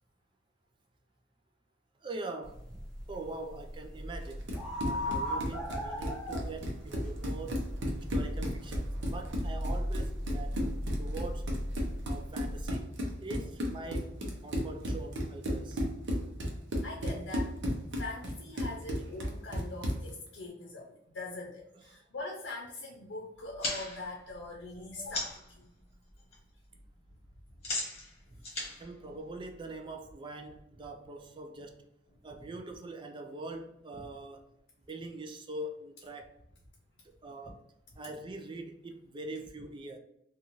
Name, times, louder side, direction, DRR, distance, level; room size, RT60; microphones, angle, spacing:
voice 1, 2.0-2.8 3.1-4.5 4.8-7.6 8.0-11.5 12.1-12.9 13.2-14.2 14.4-15.8 21.9-22.0 28.3-28.4 28.8-31.8 32.2-34.5 34.9-36.4 37.2-37.6 37.9-40.0, right 2 dB, 25° right, 0.3 m, -43 dB
sound 1, 2.4-12.7, equal, 5° left, 0.8 m, -37 dB
Run, 4.3-20.1, equal, 75° right, 0.6 m, -35 dB
voice 2, 12.1-12.7 13.0-13.2 13.8-14.0 14.3-14.4 16.8-17.5 18.0-25.7 27.6-27.8 28.3-28.4 28.6-28.7 29.0-29.1 32.4-32.5, left 2 dB, 75° left, 0.6 m, -43 dB
sound 2, 23.4-25.5 25.9-26.4 26.6-29.9, left 2 dB, 35° left, 1.1 m, -39 dB
2.7 x 2.3 x 2.9 m
head